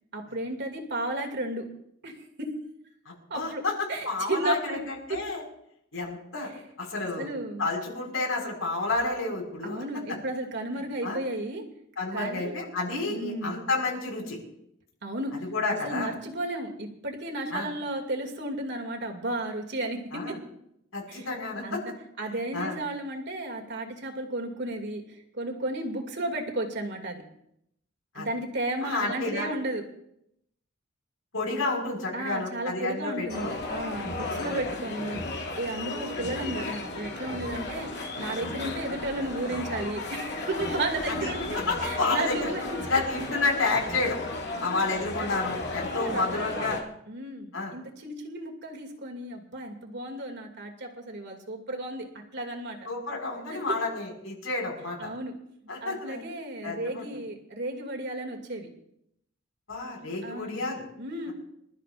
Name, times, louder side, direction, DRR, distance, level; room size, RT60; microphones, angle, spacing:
voice 1, 0.1-1.6 2.0-2.5 3.3-3.6 3.9-4.8 5.1-5.2 6.4-6.5 7.2-7.6 9.6-11.6 12.1-12.6 13.1-13.6 15.0-15.3 15.7-20.4 21.1-21.3 21.6-25.0 25.3-27.2 28.1-29.8 32.1-35.2 35.5-37.9 38.1-43.0 44.5-44.8 45.7-46.7 47.1-52.1 52.3-52.8 53.5-53.7 55.0-55.3 55.8-58.7 60.2-60.6 61.0-61.3, right 1 dB, 55° right, 3 dB, 2.5 m, -33 dB
voice 2, 3.1-5.4 5.9-6.5 6.8-7.3 7.6-9.8 11.0-11.2 12.0-14.4 15.5-16.1 17.5-17.7 20.1-20.4 20.9-21.8 22.5-22.8 28.1-28.3 28.8-29.5 31.3-33.5 38.6-38.7 41.0-42.5 42.9-44.2 44.6-46.8 47.5-47.7 52.9-55.1 55.7-56.2 56.6-57.0 59.7-60.8, left 3 dB, 80° left, 0 dB, 5.6 m, -30 dB
sound 1, 33.3-46.8, left 2 dB, 55° left, 2.6 m, -34 dB
26.5 x 13.0 x 2.6 m, 0.76 s
head